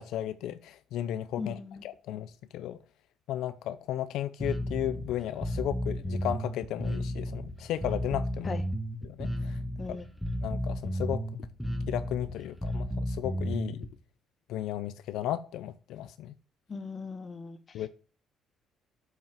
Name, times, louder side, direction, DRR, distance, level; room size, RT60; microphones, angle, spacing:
voice 1, 0.0-1.5 1.8-2.8 3.3-8.6 9.0-9.6 9.9-10.0 10.4-11.2 11.9-13.9 14.5-16.3 17.7-17.9, left 12 dB, 75° left, 0.5 m, -34 dB
voice 2, 1.4-1.8 8.4-8.6 9.8-10.1 16.7-17.9, left 4 dB, 30° left, 1.2 m, -39 dB
Bass guitar, 4.4-13.9, equal, ahead, 1.3 m, -33 dB
7.4 x 5.7 x 7.4 m
cardioid pair, 125°, 0 cm